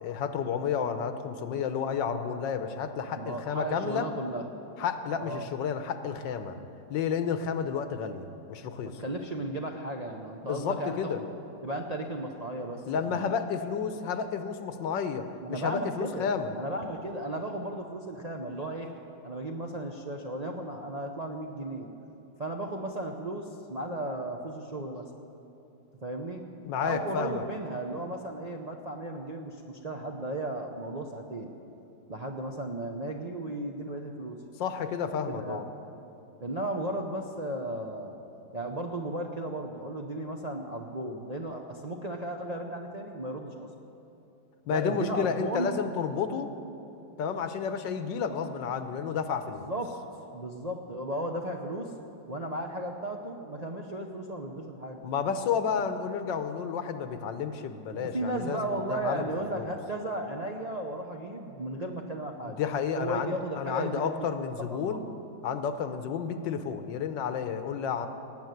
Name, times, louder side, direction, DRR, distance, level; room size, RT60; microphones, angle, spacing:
voice 1, 0.0-4.1 4.8-6.6 6.9-8.2 8.5-9.0 10.5-11.2 12.9-16.5 26.6-27.4 34.6-35.7 44.7-46.5 47.2-49.7 55.0-59.7 62.4-65.0 65.4-68.1, left 7 dB, 85° left, 9 dB, 1.5 m, -31 dB
voice 2, 3.1-4.4 5.2-5.5 8.8-11.3 11.6-13.2 15.4-18.9 19.2-21.9 22.4-25.1 26.0-26.4 26.8-31.5 32.1-34.4 35.3-35.7 36.4-38.1 38.5-43.7 44.7-45.7 49.6-49.9 50.3-51.9 52.3-55.0 57.9-62.6 63.0-65.0, right 1 dB, 45° right, 1 dB, 0.5 m, -35 dB
17.5 x 8.0 x 9.2 m, 3.0 s
omnidirectional pair, 2.0 m